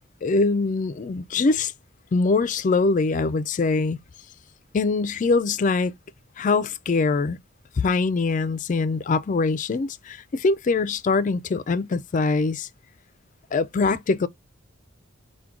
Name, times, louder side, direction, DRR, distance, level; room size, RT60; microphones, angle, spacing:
voice 1, 0.2-1.7 2.1-4.0 4.7-5.9 6.4-7.4 7.8-12.7 13.5-14.3, left 3 dB, 35° left, 0.3 m, -23 dB
5.8 x 2.2 x 3.7 m
head